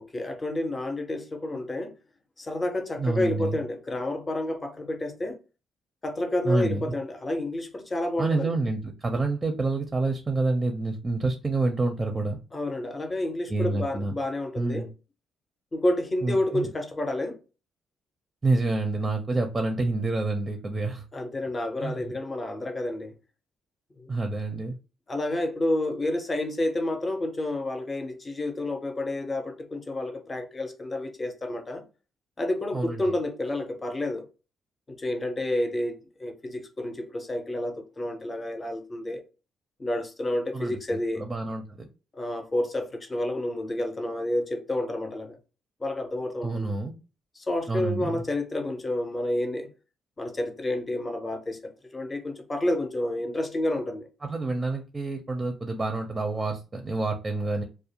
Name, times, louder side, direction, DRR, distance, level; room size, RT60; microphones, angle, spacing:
voice 1, 0.0-1.9 2.4-5.4 6.0-8.6 12.5-14.9 15.7-17.4 21.1-23.1 24.0-24.1 25.1-31.8 32.4-34.3 34.9-39.2 39.8-41.2 42.1-45.4 45.8-46.7 47.4-49.7 50.2-54.1, left 1 dB, 25° left, 0.6 m, -30 dB
voice 2, 3.0-3.6 6.4-6.9 8.2-12.4 13.5-14.1 14.6-14.9 16.2-16.7 18.4-21.0 21.8-22.1 24.1-24.7 32.7-33.0 40.5-41.9 46.4-46.9 47.7-48.2 54.2-57.6, right 3 dB, 25° right, 0.5 m, -28 dB
2.4 x 2.0 x 2.8 m
cardioid pair, 90°, 0 cm